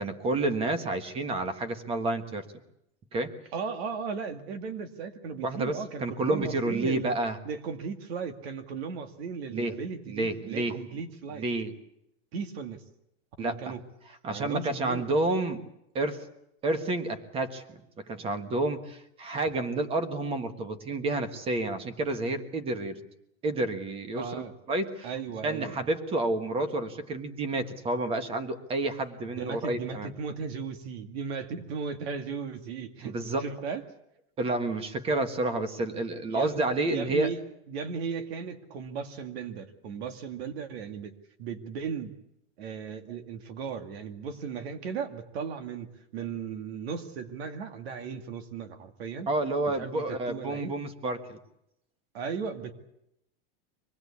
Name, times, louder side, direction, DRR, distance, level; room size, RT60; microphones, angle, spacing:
voice 1, 0.0-2.4 3.1-3.4 5.4-7.4 9.5-9.7 10.0-10.7 11.3-11.7 13.4-13.7 14.2-15.6 15.9-16.3 16.6-23.0 23.4-24.4 24.7-25.1 25.4-30.1 33.0-33.5 34.4-37.3 49.3-51.4, right 2 dB, 15° right, 10 dB, 1.4 m, -30 dB
voice 2, 3.5-7.1 7.4-11.5 12.3-12.8 13.4-13.8 14.3-15.1 24.1-24.5 25.0-25.8 29.2-33.8 36.3-37.4 37.7-41.1 41.4-42.1 42.6-49.3 49.7-50.8 52.1-52.7, right 6 dB, 70° right, 8 dB, 2.3 m, -36 dB
25.0 x 19.5 x 8.4 m, 0.81 s
supercardioid pair, 180°, 32 cm